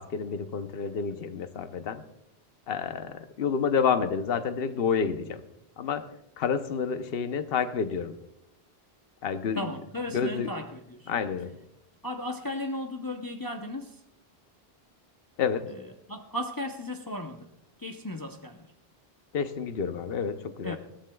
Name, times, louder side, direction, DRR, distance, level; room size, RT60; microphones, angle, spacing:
voice 1, 0.0-2.0 2.7-5.4 5.8-6.0 6.4-8.1 9.2-9.7 10.1-10.5 11.1-11.6 15.4-15.7 19.3-20.8, left 6 dB, 70° left, 1.0 m, -29 dB
voice 2, 9.5-11.2 12.0-14.0 15.7-17.5 17.8-18.7 20.6-20.8, left 1 dB, 25° left, 0.7 m, -36 dB
21.0 x 15.5 x 2.3 m
omnidirectional pair, 1.0 m